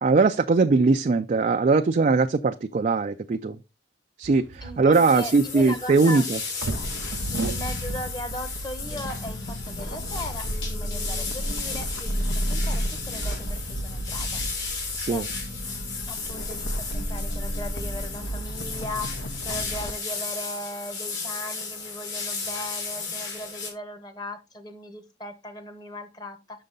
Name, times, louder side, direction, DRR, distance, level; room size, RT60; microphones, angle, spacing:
voice 1, 0.0-3.6 4.2-6.4 14.9-15.2, right 4 dB, 40° right, 0.4 m, -21 dB
sound 1, 4.2-12.9, right 3 dB, 85° right, 0.7 m, -40 dB
voice 2, 4.6-6.2 7.3-14.6 15.1-15.3 16.1-26.6, left 1 dB, 20° left, 1.0 m, -38 dB
sound 2, 4.9-23.7, left 4 dB, 75° left, 3.3 m, -35 dB
sound 3, 6.6-19.9, equal, 90° left, 1.5 m, -32 dB
6.6 x 6.1 x 3.8 m
head